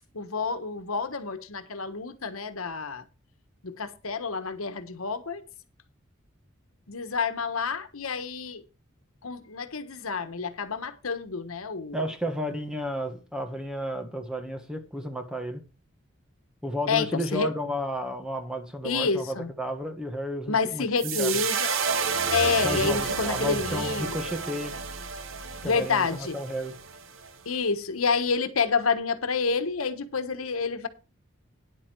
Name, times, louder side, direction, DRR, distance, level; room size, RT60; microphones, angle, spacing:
voice 1, 0.1-3.0 3.6-5.4 6.9-8.6 9.2-12.0 16.9-17.5 18.8-19.5 20.5-21.7 22.3-24.2 25.6-26.4 27.5-30.9, left 5 dB, 90° left, 1.2 m, -28 dB
voice 2, 11.9-15.6 16.6-21.4 22.6-24.7 25.6-26.8, equal, 5° right, 1.4 m, -32 dB
sound 1, 21.0-27.3, right 5 dB, 70° right, 1.1 m, -30 dB
10.0 x 8.5 x 4.5 m
head